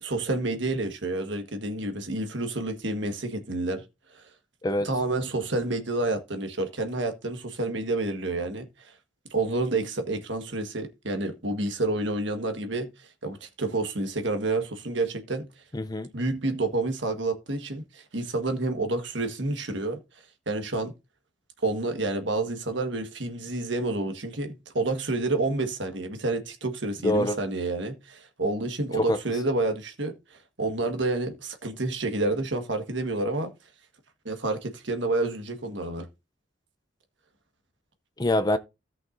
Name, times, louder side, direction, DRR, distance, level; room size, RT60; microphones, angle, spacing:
voice 1, 0.0-3.8 4.1-4.2 4.8-8.9 9.3-12.9 13.2-15.5 16.1-20.0 20.5-20.9 21.6-33.5 34.2-36.1, right 2 dB, 70° right, 1.5 m, -29 dB
voice 2, 15.7-16.1 27.0-27.4 29.0-29.2 38.2-38.6, left 1 dB, 20° left, 0.5 m, -25 dB
17.0 x 5.7 x 2.6 m
head